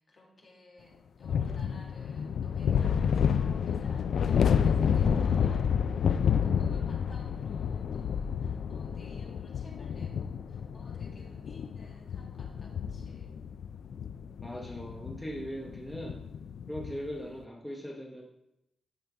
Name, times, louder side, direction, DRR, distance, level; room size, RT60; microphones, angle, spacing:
voice 1, 0.0-13.4, left 2 dB, 45° left, -1 dB, 2.1 m, -55 dB
sound 1, 1.2-17.1, left 7 dB, 80° left, 0.3 m, -30 dB
voice 2, 14.4-16.2 16.7-18.2, equal, 5° left, -1 dB, 0.9 m, -39 dB
14.0 x 5.4 x 3.4 m, 0.84 s
wide cardioid pair, 140°, 0 cm